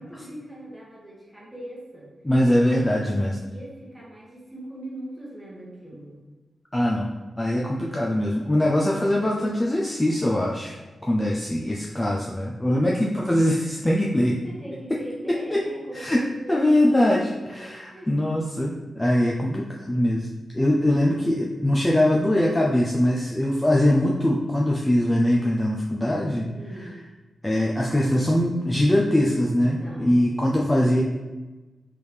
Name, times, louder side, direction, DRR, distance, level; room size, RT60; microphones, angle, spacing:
voice 1, 0.0-2.1 2.7-6.1 14.4-18.1 26.6-27.0 29.8-30.4, right 1 dB, 10° right, -5 dB, 1.1 m, -41 dB
voice 2, 2.2-3.4 6.7-7.1 7.4-10.7 11.0-14.4 15.5-15.6 15.9-16.2 16.5-20.3 20.5-26.5 26.8-26.9 27.4-31.0, left 1 dB, 10° left, -3 dB, 0.4 m, -22 dB
4.4 x 3.3 x 3.3 m, 1.2 s
wide cardioid pair, 155°, 0 cm